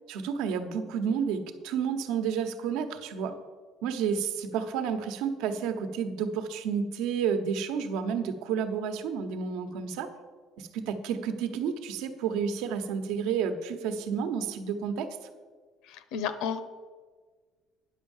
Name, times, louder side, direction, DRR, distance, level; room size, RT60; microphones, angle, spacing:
voice 1, 0.1-3.3 3.8-10.1 10.6-15.1, right 7 dB, 90° right, 8 dB, 1.0 m, -30 dB
voice 2, 15.9-16.6, left 7 dB, 75° left, 12 dB, 0.9 m, -32 dB
9.9 x 6.4 x 7.3 m, 1.5 s
cardioid pair, 175°, 0 cm